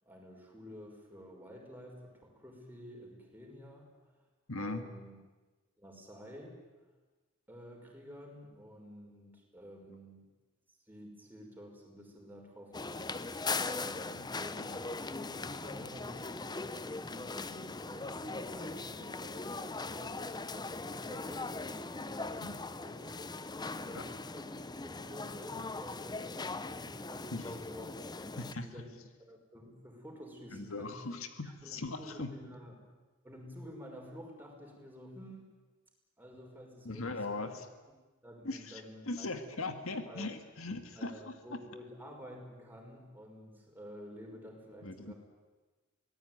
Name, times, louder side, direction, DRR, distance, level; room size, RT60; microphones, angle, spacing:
voice 1, 0.0-3.9 4.5-5.2 5.8-6.6 7.5-10.3 10.9-23.2 23.5-28.0 28.3-31.0 31.4-32.8 33.2-35.5 36.2-37.5 38.2-39.6 40.1-40.3 41.0-45.1, equal, 10° right, 0 dB, 5.8 m, -51 dB
voice 2, 4.5-4.8 22.4-22.6 23.9-24.1 27.3-27.5 28.4-28.8 30.5-32.3 36.9-37.7 38.4-41.3 44.8-45.1, left 2 dB, 70° left, 8 dB, 1.8 m, -39 dB
sound 1, 12.7-28.5, left 3 dB, 20° left, 0.8 m, -40 dB
25.0 x 18.5 x 9.4 m, 1.2 s
head